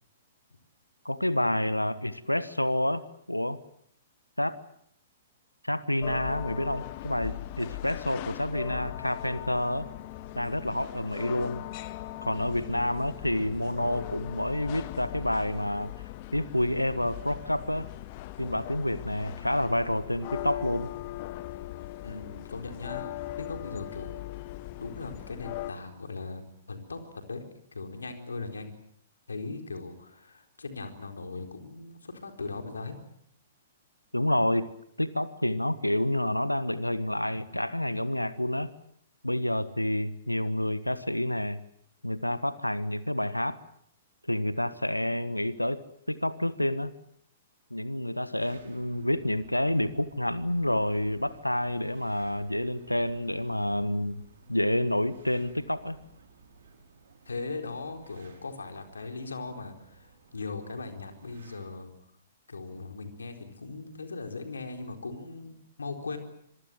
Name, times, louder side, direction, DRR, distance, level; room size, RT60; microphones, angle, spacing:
voice 1, 1.0-3.6 4.4-4.6 5.6-9.9 10.3-11.6 12.2-15.9 16.3-17.9 18.4-20.9 34.1-34.7 35.0-38.7 39.2-41.6 42.0-43.6 44.3-45.8 46.1-46.9 47.7-54.2 54.5-56.0, left 1 dB, 90° left, 15 dB, 1.3 m, -28 dB
sound 1, 6.0-25.7, left 15 dB, 40° left, 1.2 m, -39 dB
voice 2, 22.0-23.1 23.4-24.3 24.8-27.4 27.7-28.8 29.3-33.0 57.3-61.9 62.5-66.2, left 3 dB, 70° left, 5 dB, 4.2 m, -39 dB
sound 2, 48.4-61.9, right 4 dB, 55° right, 6.3 m, -56 dB
26.0 x 23.0 x 7.7 m, 0.68 s
figure-of-eight pair, 115°, 0 cm